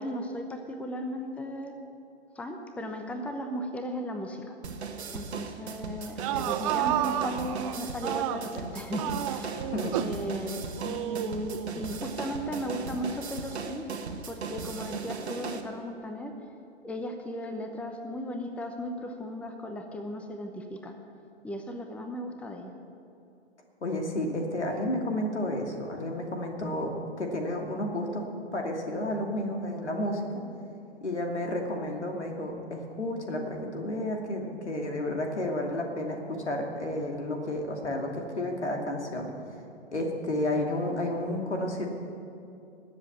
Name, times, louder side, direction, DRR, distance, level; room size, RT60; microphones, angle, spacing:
voice 1, 0.0-1.7 2.3-4.6 5.1-9.7 10.0-13.9 14.3-16.3 16.8-21.0 21.4-22.7, equal, 5° left, 5 dB, 0.8 m, -36 dB
sound 1, 4.6-15.6, right 5 dB, 70° right, 1.5 m, -37 dB
sound 2, 6.0-8.6 9.0-10.2 10.8-11.8, right 13 dB, 30° right, 0.5 m, -31 dB
voice 2, 9.6-10.0 23.8-28.2 28.5-30.3 31.0-39.3 39.9-41.9, left 1 dB, 80° left, 2 dB, 2.6 m, -31 dB
20.5 x 7.7 x 8.1 m, 2.7 s
figure-of-eight pair, 110°, 34 cm